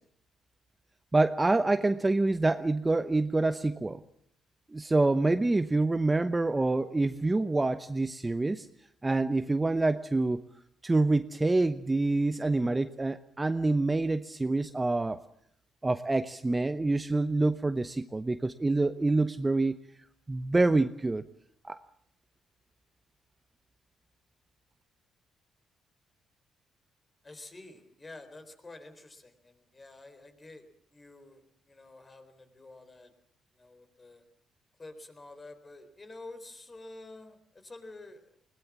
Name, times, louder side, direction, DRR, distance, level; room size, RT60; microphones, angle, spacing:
voice 1, 1.1-4.0 4.7-8.7 9.0-10.4 10.8-15.2 15.8-19.8 20.3-21.3 21.6-21.8, right 2 dB, 20° right, 11 dB, 0.9 m, -26 dB
voice 2, 27.2-30.6 30.9-33.1 33.5-34.2 34.8-38.2, left 2 dB, 25° left, 9 dB, 4.0 m, -49 dB
21.0 x 19.0 x 7.3 m, 0.69 s
cardioid pair, 90°, 0 cm